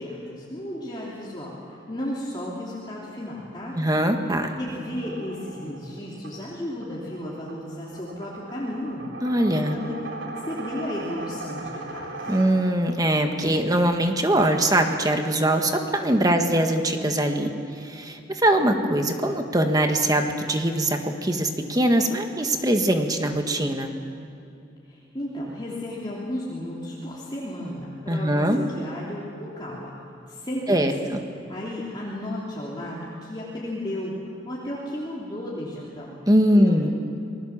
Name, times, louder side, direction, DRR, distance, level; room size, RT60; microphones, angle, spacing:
voice 1, 0.0-3.8 4.6-9.1 9.5-9.9 10.2-12.4 16.2-16.5 24.9-29.9 30.3-30.9 31.5-34.2 34.5-36.2 36.5-36.9, left 1 dB, 25° left, -6 dB, 3.3 m, -34 dB
voice 2, 3.7-4.5 9.2-9.8 12.3-17.5 17.8-23.9 28.1-28.6 30.7-31.2 36.3-36.9, right 1 dB, 20° right, 5 dB, 1.6 m, -22 dB
sound 1, 4.7-13.0, right 2 dB, 85° right, 3.4 m, -39 dB
27.5 x 20.5 x 7.4 m, 2.7 s
head